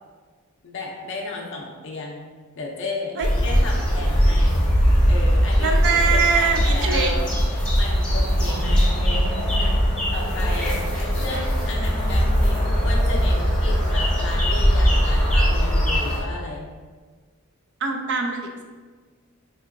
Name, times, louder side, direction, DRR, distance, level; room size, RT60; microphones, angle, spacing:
voice 1, 0.6-4.6 5.0-7.3 7.7-9.3 9.6-10.9 11.1-16.7, left 2 dB, 55° left, -1 dB, 0.5 m, -34 dB
sound 1, 3.2-16.2, equal, 5° left, 0.6 m, -20 dB
voice 2, 5.6-7.1 17.8-18.6, right 5 dB, 55° right, 3 dB, 0.4 m, -23 dB
3.6 x 2.8 x 2.5 m, 1.5 s
head